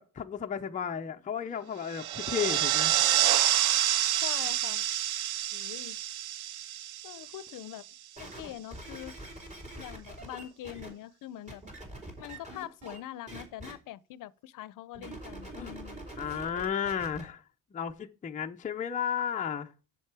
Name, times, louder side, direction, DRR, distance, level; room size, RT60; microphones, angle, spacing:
voice 1, 0.0-3.0 15.5-15.8 16.2-17.4 17.7-19.7, left 8 dB, 25° left, 0.6 m, -33 dB
sound 1, 1.9-7.7, right 12 dB, 65° right, 0.5 m, -28 dB
voice 2, 4.2-4.9 5.5-6.0 7.0-7.9 8.2-9.2 9.8-11.6 12.2-16.0, left 13 dB, 70° left, 0.7 m, -43 dB
sound 2, 8.2-10.9 11.5-13.0 13.3-13.7 14.9-17.2 17.9-18.0, right 1 dB, 20° right, 4.3 m, -44 dB
7.6 x 7.4 x 4.8 m
cardioid pair, 160°, 33 cm